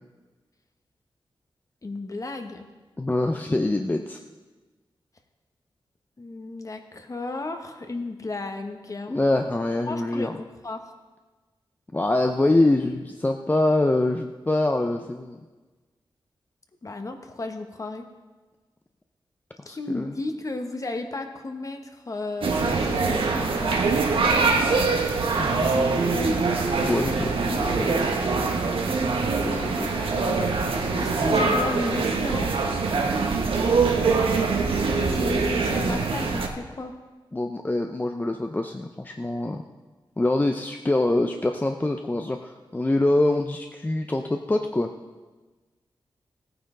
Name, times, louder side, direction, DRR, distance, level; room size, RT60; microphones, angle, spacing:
voice 1, 1.8-2.7 6.2-9.1 9.9-10.9 16.8-18.0 19.6-23.9 29.7-30.5 31.0-32.8 35.1-36.9, left 2 dB, 40° left, 5 dB, 1.2 m, -34 dB
voice 2, 3.0-4.2 9.1-10.4 11.9-15.4 19.7-20.1 25.3-26.5 26.9-28.1 29.4-29.9 33.3-33.6 37.3-39.6 40.2-44.9, left 2 dB, 20° left, 4 dB, 0.6 m, -25 dB
sound 1, 22.4-36.5, right 4 dB, 85° right, 1.2 m, -23 dB
16.5 x 9.4 x 3.8 m, 1.3 s
wide cardioid pair, 85°, 9 cm